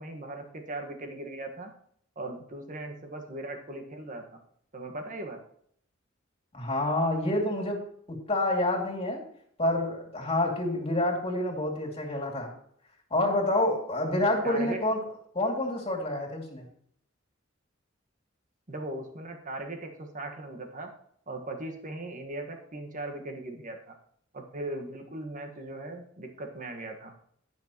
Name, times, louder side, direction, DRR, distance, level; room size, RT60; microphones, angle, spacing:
voice 1, 0.0-1.7 2.1-4.4 4.7-5.4 14.4-14.8 18.7-20.9 21.3-23.9 24.3-27.1, right 2 dB, 40° right, 4 dB, 1.6 m, -38 dB
voice 2, 6.5-7.8 8.3-9.2 9.6-12.5 13.1-15.0 15.3-16.6, left 1 dB, 30° left, 0 dB, 2.6 m, -28 dB
17.5 x 6.2 x 3.0 m, 0.65 s
head